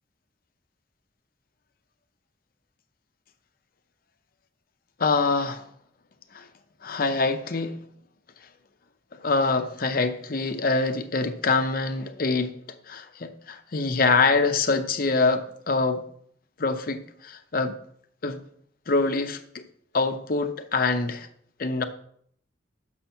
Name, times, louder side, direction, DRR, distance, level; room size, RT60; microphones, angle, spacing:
voice 1, 5.0-5.7 6.3-6.5 6.8-7.8 9.1-12.6 12.9-16.0 16.6-17.8 18.2-18.4 18.9-19.6 19.9-21.3 21.6-21.8, left 3 dB, 50° left, 0.7 m, -25 dB
6.2 x 6.0 x 5.6 m
head